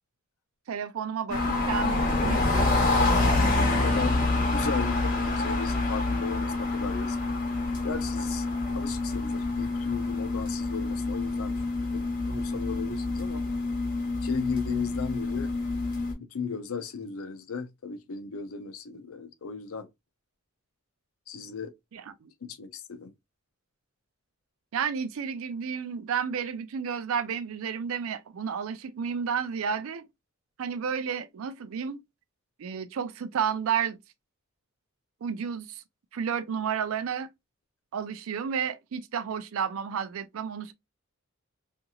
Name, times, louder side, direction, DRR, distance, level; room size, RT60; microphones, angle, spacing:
voice 1, 0.7-2.9 21.9-22.3 24.7-30.0 30.6-32.0 32.6-34.0 35.2-35.8 36.1-37.3 37.9-40.7, right 7 dB, 75° right, 0.4 m, -31 dB
sound 1, 1.3-16.1, left 2 dB, 40° left, 0.9 m, -27 dB
voice 2, 3.8-7.2 7.8-8.5 8.7-11.5 11.9-13.4 14.2-15.5 16.2-19.9 21.3-21.7 22.4-23.1, left 5 dB, 85° left, 0.6 m, -36 dB
2.8 x 2.5 x 2.3 m
head